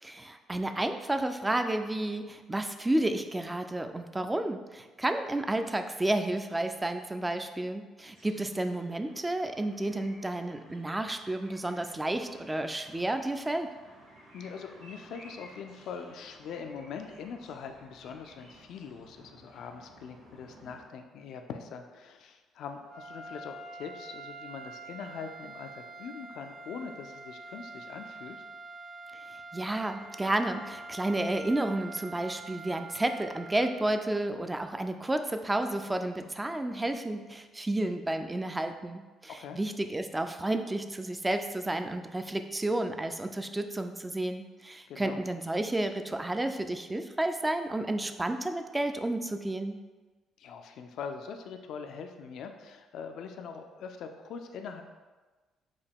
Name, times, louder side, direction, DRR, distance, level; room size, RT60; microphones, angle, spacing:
voice 1, 0.0-13.7 29.5-49.8, right 1 dB, 15° right, 7 dB, 0.4 m, -31 dB
sound 1, 8.1-20.8, right 1 dB, 80° right, 1.2 m, -56 dB
voice 2, 14.3-28.4 39.3-39.6 44.9-45.2 50.4-54.8, left 6 dB, 65° left, 6 dB, 0.3 m, -42 dB
sound 2, 22.8-34.4, right 3 dB, 60° right, 0.7 m, -46 dB
4.9 x 2.3 x 3.5 m, 1.3 s
hypercardioid pair, 50°, 0 cm